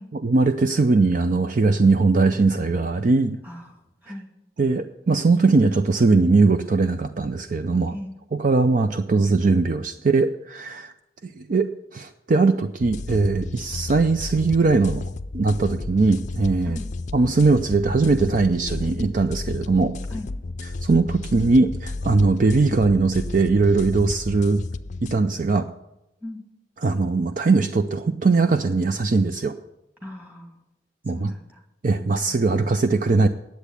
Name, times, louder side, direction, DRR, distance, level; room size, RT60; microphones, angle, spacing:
voice 1, 0.2-3.4 4.6-7.9 8.4-10.9 11.2-15.0 15.3-16.8 17.1-20.0 20.8-24.6 25.0-25.7 26.8-29.5 31.0-31.3 31.8-33.3, right 3 dB, 45° right, 9 dB, 0.5 m, -20 dB
voice 2, 3.4-4.3 7.9-8.2 16.6-16.9 20.1-20.3 26.2-26.4 30.0-30.6 31.0-31.6, left 1 dB, 10° right, 1 dB, 2.4 m, -39 dB
sound 1, 12.8-25.2, left 2 dB, 45° left, 0.5 m, -32 dB
10.0 x 8.1 x 8.3 m, 0.91 s
head